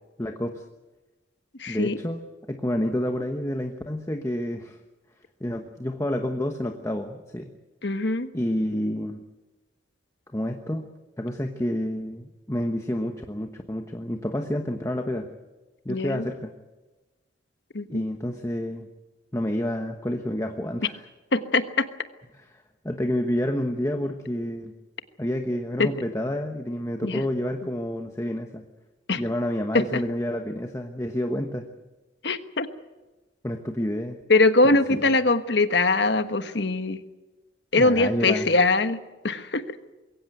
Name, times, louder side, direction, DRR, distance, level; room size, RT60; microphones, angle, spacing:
voice 1, 0.2-0.6 1.7-2.2 2.5-4.8 5.4-7.5 8.3-9.2 10.3-10.9 11.2-15.3 15.8-16.5 17.9-18.9 19.3-21.0 22.3-24.7 25.2-28.6 29.1-31.7 33.4-34.2 34.6-35.0 37.8-38.5, left 1 dB, 15° left, 5 dB, 1.1 m, -29 dB
voice 2, 1.6-2.0 7.8-8.3 15.9-16.2 17.7-18.0 21.3-21.9 25.8-25.9 27.0-27.2 29.1-29.2 29.7-29.8 32.2-32.7 34.3-37.0 37.7-39.0 39.2-39.6, left 3 dB, 70° left, 10 dB, 1.3 m, -22 dB
22.0 x 17.0 x 9.2 m, 1.2 s
head